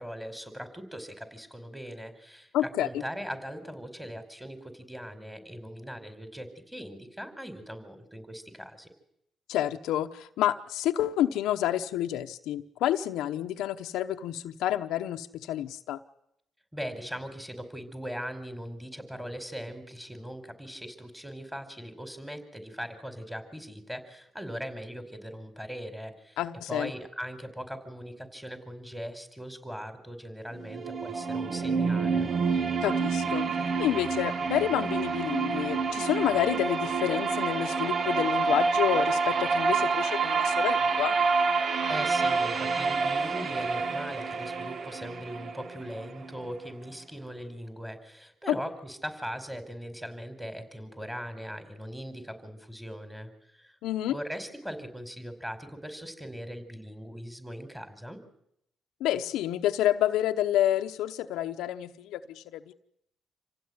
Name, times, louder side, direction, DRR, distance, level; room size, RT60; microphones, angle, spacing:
voice 1, 0.0-8.9 16.7-26.4 26.7-32.3 41.9-53.7 54.1-58.2, equal, 5° right, 7 dB, 4.9 m, -40 dB
voice 2, 2.5-2.9 9.5-16.0 26.4-26.9 32.8-33.5 33.8-41.2 48.5-48.6 53.8-54.2 59.0-62.7, left 12 dB, 90° left, 7 dB, 0.9 m, -29 dB
sound 1, 30.5-46.5, right 4 dB, 50° right, 1.5 m, -28 dB
27.0 x 16.0 x 9.6 m, 0.77 s
cardioid pair, 90°, 0 cm